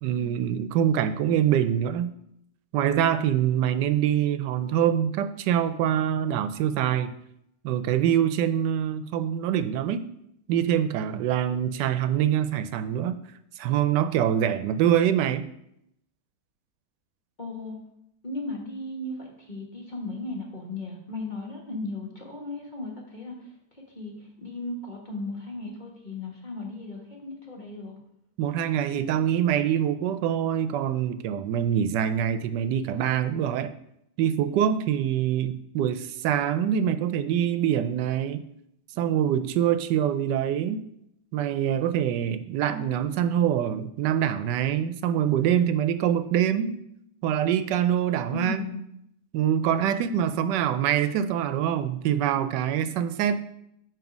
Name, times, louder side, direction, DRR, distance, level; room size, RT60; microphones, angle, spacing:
voice 1, 0.0-2.1 2.7-7.1 7.6-10.0 10.5-13.2 13.6-15.4 28.4-33.7 34.2-38.4 39.0-40.8 41.3-46.7 47.2-48.6 49.3-53.4, right 10 dB, 90° right, 11 dB, 1.2 m, -24 dB
voice 2, 17.4-17.8 18.2-23.5 23.9-27.9 48.3-48.8, left 2 dB, 30° left, -1 dB, 1.3 m, -36 dB
8.9 x 3.2 x 5.9 m, 0.77 s
omnidirectional pair, 1.8 m